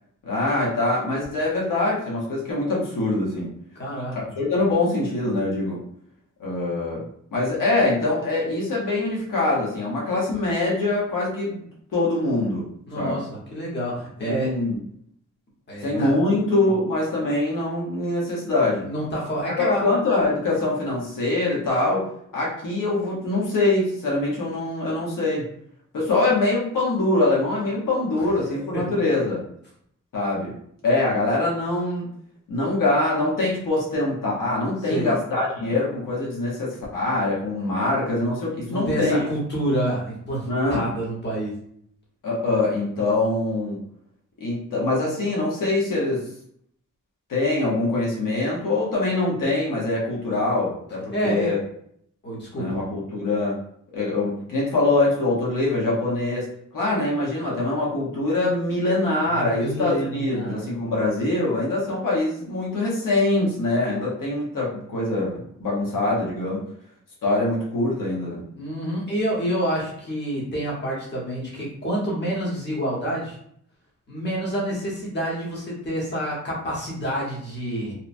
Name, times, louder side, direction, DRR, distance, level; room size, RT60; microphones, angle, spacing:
voice 1, 0.2-3.5 4.1-5.8 6.4-7.0 7.3-12.6 13.0-13.2 14.2-14.8 15.8-18.9 19.6-22.0 22.3-25.4 25.9-29.4 30.1-30.5 30.8-32.1 32.5-39.2 40.5-40.9 42.2-43.8 44.4-46.2 47.3-51.6 52.5-53.6 53.9-56.5 56.7-66.6 67.2-68.4, left 2 dB, 80° left, -4 dB, 0.9 m, -24 dB
voice 2, 3.7-4.2 12.9-14.5 15.7-16.1 18.8-19.9 28.5-28.8 34.9-35.2 35.6-35.8 38.7-41.5 51.1-51.5 52.2-52.8 59.3-60.7 68.6-73.4 74.1-77.9, right 1 dB, 35° left, -5 dB, 1.0 m, -28 dB
2.9 x 2.1 x 2.5 m, 0.67 s
wide cardioid pair, 145°, 32 cm